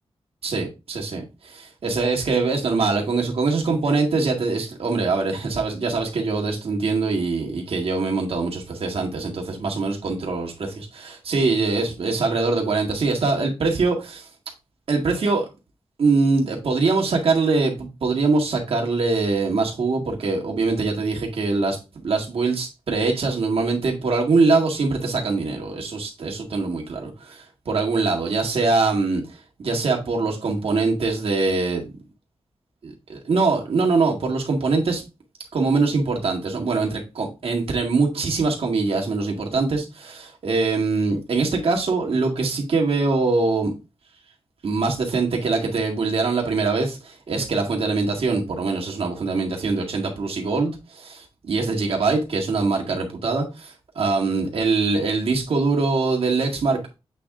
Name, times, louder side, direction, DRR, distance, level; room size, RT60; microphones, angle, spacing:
voice 1, 0.4-14.3 14.9-15.5 16.0-21.8 22.0-31.8 32.8-35.0 35.5-43.7 44.6-56.8, right 3 dB, 75° right, 1.9 m, -23 dB
8.3 x 3.6 x 3.7 m
wide cardioid pair, 155°, 10 cm